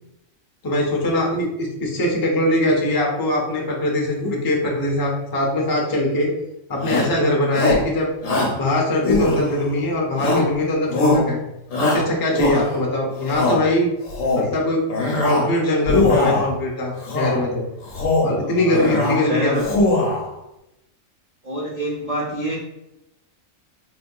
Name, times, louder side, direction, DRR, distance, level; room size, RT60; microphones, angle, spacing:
voice 1, 0.6-6.3 6.7-8.1 8.6-11.4 11.8-13.9 14.3-14.8 15.2-17.7 18.2-19.6, left 1 dB, 35° left, -1 dB, 0.3 m, -21 dB
Shout, 6.8-7.2 7.5-7.9 8.2-8.6 9.0-9.7 10.2-10.6 10.9-11.3 11.7-12.8 13.2-13.6 14.0-14.5 14.9-15.5 15.8-16.5 17.0-17.4 17.8-18.4 18.7-19.2 19.5-20.3, left 2 dB, 65° left, 1.1 m, -21 dB
voice 2, 18.4-19.7 21.4-22.6, right 1 dB, 45° right, -6 dB, 0.5 m, -27 dB
4.2 x 2.7 x 2.2 m, 0.88 s
omnidirectional pair, 1.4 m